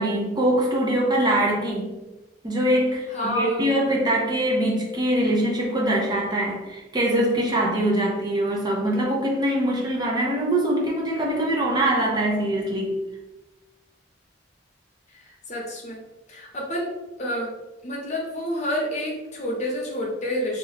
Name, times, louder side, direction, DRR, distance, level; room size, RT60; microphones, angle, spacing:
voice 1, 0.0-1.9 2.4-13.0, right 1 dB, 25° right, -3 dB, 0.5 m, -23 dB
voice 2, 3.1-3.8 15.2-16.0 16.3-16.9 17.2-17.5 17.8-20.6, left 1 dB, 40° left, -2 dB, 0.9 m, -29 dB
2.8 x 2.4 x 4.0 m, 1.1 s
head